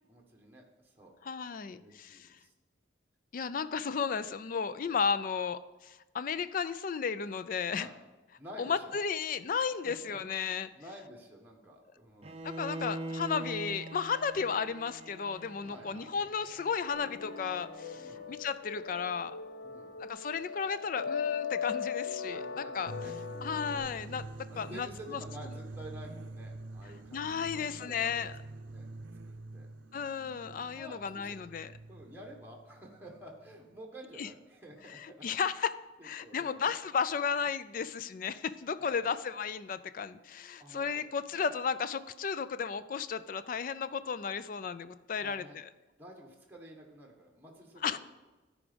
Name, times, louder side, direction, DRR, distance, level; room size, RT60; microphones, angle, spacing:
voice 1, 0.1-1.1 1.7-2.5 7.7-8.0 8.4-9.0 9.8-12.4 15.6-16.1 17.9-18.3 19.6-19.9 22.3-23.6 24.5-28.3 28.6-29.7 30.7-31.5 31.9-35.6 36.0-36.8 38.8-39.1 40.6-40.9 41.3-41.4 45.2-45.6 46.0-48.0, equal, 10° right, 0 dB, 1.1 m, -51 dB
voice 2, 1.2-2.3 3.3-7.9 8.6-10.7 12.4-19.4 20.0-22.9 23.4-24.3 24.6-24.9 25.1-25.2 27.1-28.3 29.9-31.7 34.2-34.3 35.0-35.7 36.0-45.7 47.8-48.0, left 6 dB, 45° left, 14 dB, 0.3 m, -34 dB
Bowed string instrument, 12.2-18.3, right 2 dB, 30° right, 0.6 m, -43 dB
sound 1, 16.9-23.8, left 6 dB, 75° left, 0.9 m, -38 dB
sound 2, 22.8-33.8, right 2 dB, 80° right, 0.6 m, -47 dB
13.0 x 5.0 x 5.1 m, 1.2 s
head